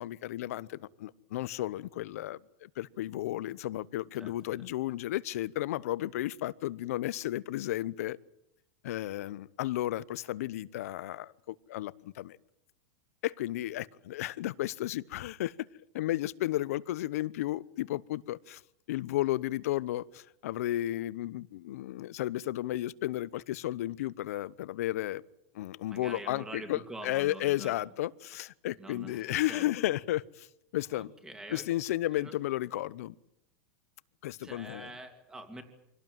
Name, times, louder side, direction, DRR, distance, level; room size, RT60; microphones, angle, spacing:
voice 1, 0.0-8.2 8.8-12.4 13.2-15.6 15.9-18.6 18.9-25.2 25.5-30.5 30.7-31.1 31.5-33.1 34.2-34.9, left 15 dB, 70° left, 0.9 m, -33 dB
voice 2, 25.9-27.7 28.8-29.7 30.9-31.7 32.1-32.3 34.4-35.6, right 2 dB, 10° right, 2.8 m, -45 dB
25.0 x 18.0 x 9.2 m
supercardioid pair, 160°, 8 cm